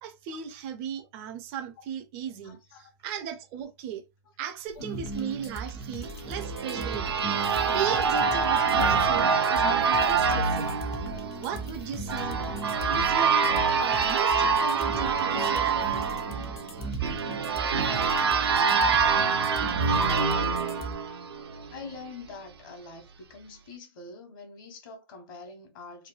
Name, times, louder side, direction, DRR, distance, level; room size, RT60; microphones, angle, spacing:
voice 1, 0.0-4.0 4.4-7.1 7.6-10.8 11.4-12.4 12.9-13.5 13.8-16.0, right 8 dB, 30° right, 0.5 m, -36 dB
voice 2, 2.4-2.9 21.7-26.1, left 3 dB, 55° left, 1.1 m, -45 dB
sound 1, 4.8-20.2, right 2 dB, 85° left, 1.3 m, -42 dB
sound 2, 4.9-20.9, right 1 dB, 20° left, 0.5 m, -40 dB
sound 3, 6.0-21.7, right 5 dB, 80° right, 0.6 m, -25 dB
3.1 x 2.1 x 2.3 m
hypercardioid pair, 135°, 13 cm